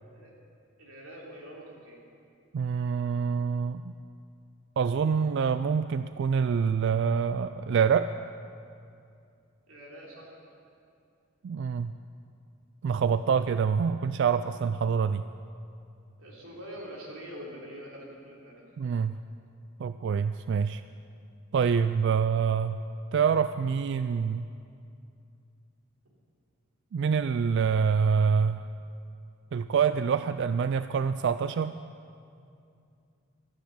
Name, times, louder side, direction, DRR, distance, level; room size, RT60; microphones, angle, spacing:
voice 1, 0.8-2.0 9.7-10.3 16.2-19.0 26.0-26.1, equal, 85° right, -3 dB, 3.3 m, -45 dB
voice 2, 2.5-3.9 4.8-8.1 11.4-11.9 12.8-15.2 18.8-19.2 19.8-20.8 21.5-22.8 23.1-24.5 26.9-28.6 29.5-31.7, right 6 dB, 55° right, 12 dB, 0.3 m, -26 dB
13.0 x 10.0 x 8.5 m, 2.5 s
head